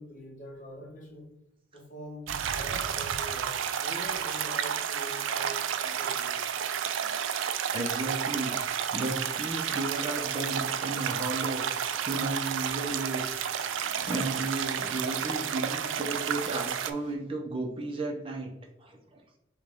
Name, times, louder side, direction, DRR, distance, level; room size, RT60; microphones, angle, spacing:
voice 1, 0.0-1.3 1.7-6.4, equal, 40° left, 0 dB, 1.0 m, -44 dB
sound 1, 2.3-16.9, right 8 dB, 80° right, 0.4 m, -31 dB
voice 2, 7.7-8.6 8.9-11.7 12.1-13.3 13.6-18.5 18.8-19.2, right 2 dB, 25° right, 0 dB, 0.6 m, -34 dB
Waves surf, 7.9-17.1, left 3 dB, 90° left, 0.7 m, -53 dB
6.1 x 2.3 x 3.4 m, 0.88 s
head